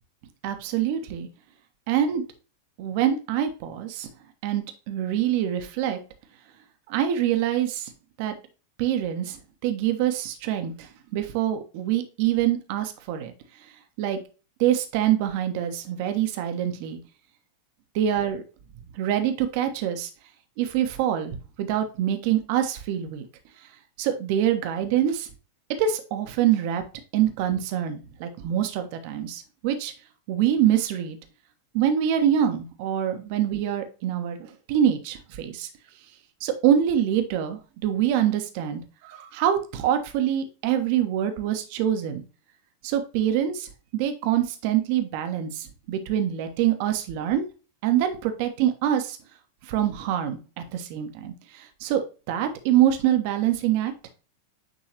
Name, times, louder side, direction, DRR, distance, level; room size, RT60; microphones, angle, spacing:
voice 1, 0.4-1.3 1.9-2.2 2.8-4.1 4.4-6.0 6.9-7.9 8.2-8.3 8.8-13.3 14.0-14.2 14.6-17.0 17.9-18.4 18.9-20.1 20.6-23.2 24.0-25.3 25.8-26.8 27.1-29.9 30.3-31.2 31.7-35.7 36.4-42.2 42.8-47.4 47.8-49.2 49.6-53.9, right 10 dB, 45° right, 7 dB, 1.2 m, -25 dB
9.2 x 3.8 x 2.9 m, 0.34 s
figure-of-eight pair, 90°, 0 cm